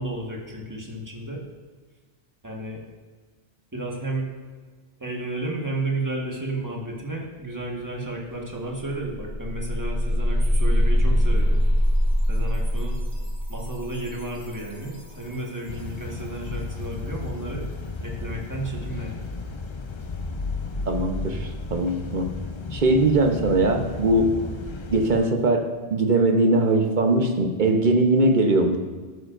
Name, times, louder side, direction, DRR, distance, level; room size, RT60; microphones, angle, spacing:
voice 1, 0.0-1.4 2.4-2.8 3.7-4.3 5.0-11.6 12.3-13.0 13.5-17.7 18.0-19.3, right 1 dB, 15° right, -2 dB, 1.6 m, -32 dB
sound 1, 8.3-8.4 8.7-15.5, equal, 5° left, 1.5 m, -24 dB
sound 2, 15.7-25.2, left 3 dB, 35° left, 0.5 m, -33 dB
voice 2, 20.9-22.3 22.7-24.4 24.9-28.8, right 2 dB, 50° right, 5 dB, 1.0 m, -21 dB
12.5 x 9.5 x 2.6 m, 1.5 s
omnidirectional pair, 1.1 m